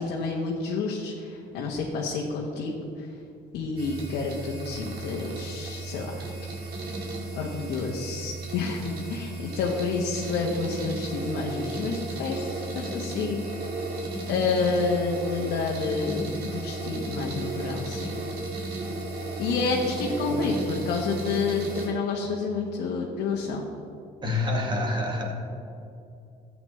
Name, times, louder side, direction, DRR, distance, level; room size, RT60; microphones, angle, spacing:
voice 1, 0.0-3.1 3.5-6.3 7.3-13.9 14.3-18.2 19.4-23.6, left 4 dB, 85° left, -2 dB, 1.2 m, -29 dB
sound 1, 3.8-21.9, right 3 dB, 65° right, 2.4 m, -34 dB
voice 2, 24.2-25.3, left 2 dB, 25° right, 0 dB, 2.0 m, -27 dB
13.0 x 8.6 x 3.2 m, 2.6 s
cardioid pair, 110°, 17 cm